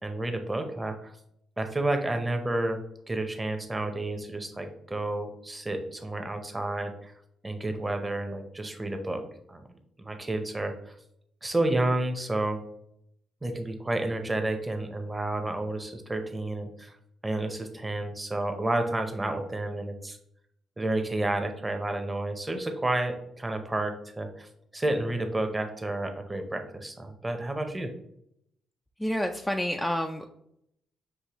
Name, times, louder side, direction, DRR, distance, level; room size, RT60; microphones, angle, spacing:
voice 1, 0.0-1.1 1.6-2.8 3.1-7.1 7.4-9.2 9.5-9.6 10.0-10.9 11.4-12.6 13.4-17.0 17.2-20.2 20.8-27.9, right 2 dB, 15° right, 6 dB, 0.7 m, -30 dB
voice 2, 29.0-30.3, equal, 10° left, 3 dB, 0.3 m, -29 dB
6.3 x 2.6 x 2.9 m, 0.75 s
cardioid pair, 90°, 0 cm